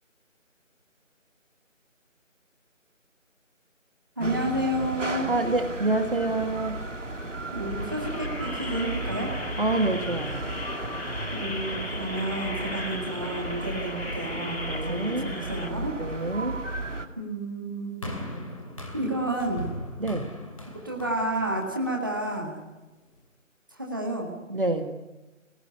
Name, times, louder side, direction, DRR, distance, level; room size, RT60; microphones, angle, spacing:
voice 1, 4.2-5.3 7.5-9.3 11.3-16.0 17.2-18.0 18.9-19.7 20.8-22.6 23.7-24.4, right 1 dB, 15° right, -1 dB, 1.9 m, -30 dB
sound 1, 4.2-17.1, right 2 dB, 70° right, 2.8 m, -34 dB
voice 2, 5.3-6.8 9.6-10.5 14.7-15.3 15.9-16.6 20.0-20.3 24.5-25.0, right 2 dB, 45° right, 7 dB, 1.9 m, -27 dB
sound 2, 7.7-15.7, left 2 dB, 50° left, 2.6 m, -37 dB
sound 3, 18.0-22.4 23.2-23.3, left 1 dB, 25° left, 2.6 m, -39 dB
29.0 x 18.5 x 9.8 m, 1.1 s
figure-of-eight pair, 175°, 39 cm